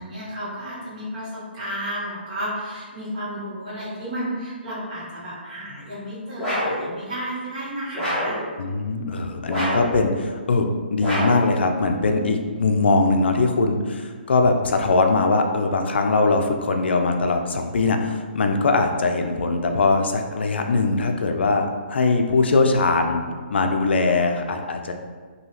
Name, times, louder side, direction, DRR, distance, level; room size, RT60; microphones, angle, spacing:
voice 1, 0.0-8.4, equal, 45° right, -8 dB, 1.4 m, -32 dB
sound 1, 6.4-6.8 7.9-8.4 9.5-10.0 11.0-11.5, equal, ahead, 1.1 m, -25 dB
voice 2, 8.6-23.2 23.5-24.9, left 3 dB, 75° left, 5 dB, 0.3 m, -21 dB
2.8 x 2.7 x 2.8 m, 1.6 s
hypercardioid pair, 150°, 6 cm